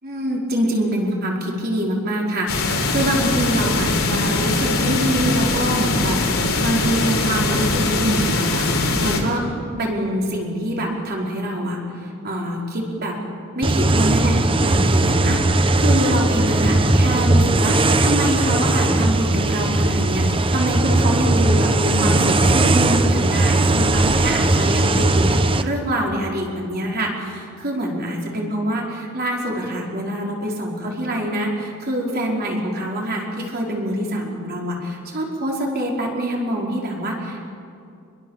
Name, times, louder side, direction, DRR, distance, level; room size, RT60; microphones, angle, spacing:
voice 1, 0.0-9.5 9.8-13.2 13.5-37.4, right 1 dB, 45° right, -1 dB, 4.7 m, -25 dB
sound 1, 2.5-9.2, left 2 dB, 65° left, 3.8 m, -21 dB
sound 2, 13.6-25.6, right 2 dB, 25° right, 0.9 m, -18 dB
27.0 x 22.5 x 7.4 m, 2.4 s
head